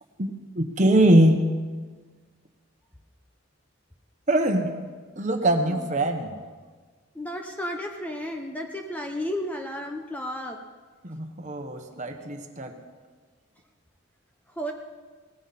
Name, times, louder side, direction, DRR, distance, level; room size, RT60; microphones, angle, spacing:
voice 1, 0.2-1.4 4.3-4.7 5.2-6.4 11.0-12.7, right 1 dB, 35° right, 5 dB, 1.2 m, -22 dB
voice 2, 7.1-10.6 14.5-14.7, equal, 5° left, 2 dB, 0.8 m, -33 dB
18.0 x 15.0 x 4.3 m, 1.4 s
head